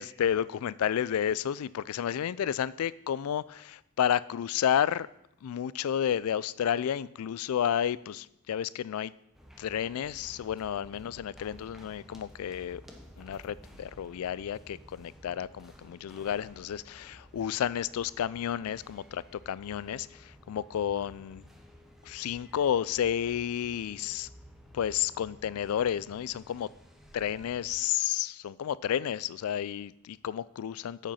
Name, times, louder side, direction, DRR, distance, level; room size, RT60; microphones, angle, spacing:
voice 1, 0.0-5.1 5.4-9.1 9.6-12.8 13.2-20.1 20.5-21.4 22.1-24.3 24.7-26.7 27.1-31.1, left 9 dB, 80° left, 19 dB, 0.3 m, -31 dB
sound 1, 9.3-27.8, equal, ahead, 0.8 m, -54 dB
8.8 x 5.2 x 5.6 m, 0.80 s
head